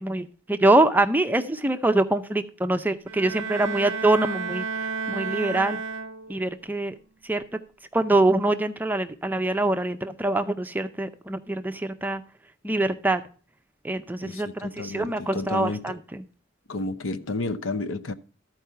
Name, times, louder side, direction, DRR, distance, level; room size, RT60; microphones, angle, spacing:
voice 1, 0.0-4.6 5.1-5.8 6.3-6.9 7.3-7.4 7.9-12.2 12.6-13.2 13.8-16.2, right 2 dB, 10° right, 0.5 m, -24 dB
Bowed string instrument, 3.1-6.6, right 5 dB, 85° right, 0.6 m, -32 dB
voice 2, 14.2-16.0 16.7-18.1, left 2 dB, 75° left, 0.7 m, -31 dB
13.0 x 4.6 x 5.6 m
head